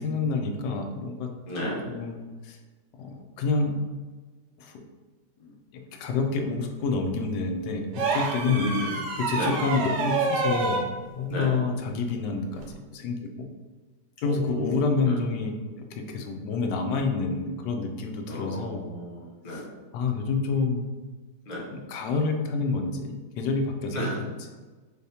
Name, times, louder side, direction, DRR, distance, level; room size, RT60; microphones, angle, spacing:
voice 1, 0.0-1.3 1.9-2.2 2.4-2.6 3.0-3.8 4.6-4.7 5.4-8.7 9.2-10.9 11.1-13.2 14.2-15.6 16.0-18.8 19.5-19.6 19.9-20.8 21.9-24.3, left 4 dB, 90° left, 4 dB, 1.2 m, -28 dB
voice 2, 1.5-1.9 8.4-8.9 9.3-9.6 11.3-11.5 14.2-15.2 18.3-19.7 21.5-21.7 23.9-24.2, left 1 dB, 35° left, -4 dB, 0.8 m, -32 dB
sound 1, 7.9-10.9 12.6-12.7, right 3 dB, 90° right, 1.3 m, -27 dB
4.0 x 3.4 x 2.7 m, 1.3 s
omnidirectional pair, 1.8 m